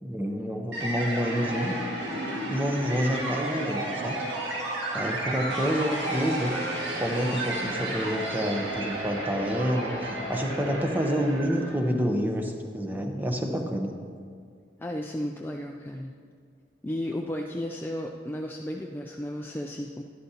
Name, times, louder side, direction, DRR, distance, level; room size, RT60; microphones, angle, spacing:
voice 1, 0.0-1.8 2.5-4.2 4.9-6.5 7.0-13.9, equal, 10° right, 2 dB, 0.8 m, -28 dB
sound 1, 0.7-11.9, right 1 dB, 85° right, 1.9 m, -32 dB
voice 2, 14.8-16.1 16.8-20.0, left 1 dB, 10° left, 1 dB, 0.3 m, -34 dB
11.5 x 11.5 x 2.8 m, 2.1 s
head